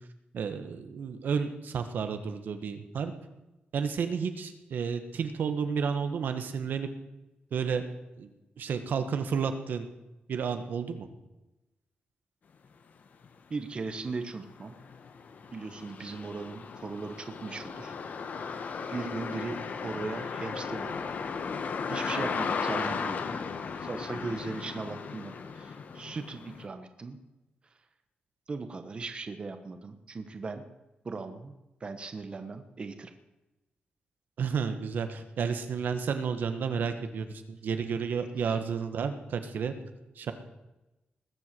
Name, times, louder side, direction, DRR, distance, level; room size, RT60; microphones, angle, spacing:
voice 1, 0.3-3.1 3.7-6.9 7.5-7.8 8.2-8.3 8.6-9.8 10.3-11.1 34.4-39.7 40.2-40.3, right 6 dB, 70° right, 8 dB, 1.4 m, -31 dB
sound 1, 13.2-13.3 13.8-26.7, left 5 dB, 55° left, 1.2 m, -36 dB
voice 2, 13.5-14.7 15.5-18.0 18.9-21.1 21.9-23.3 23.7-27.2 28.5-30.6 31.0-31.5 31.8-33.1, right 4 dB, 30° right, 8 dB, 1.1 m, -38 dB
20.0 x 8.1 x 7.6 m, 0.99 s
wide cardioid pair, 165°, 3 cm